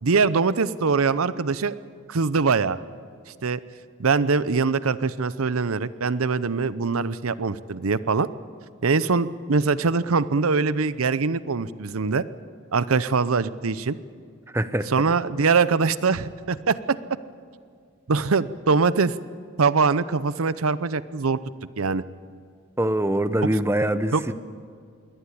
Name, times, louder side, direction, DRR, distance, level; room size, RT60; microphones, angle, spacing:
voice 1, 0.0-1.7 2.1-2.8 3.4-3.6 4.0-8.3 8.8-12.2 12.7-14.0 14.9-17.0 18.1-19.1 19.6-21.4 21.8-22.0 24.1-24.2, right 4 dB, 85° right, 16 dB, 0.7 m, -22 dB
voice 2, 14.5-14.9 22.8-24.3, right 1 dB, 10° right, 11 dB, 0.8 m, -23 dB
23.0 x 18.0 x 8.6 m, 2.1 s
head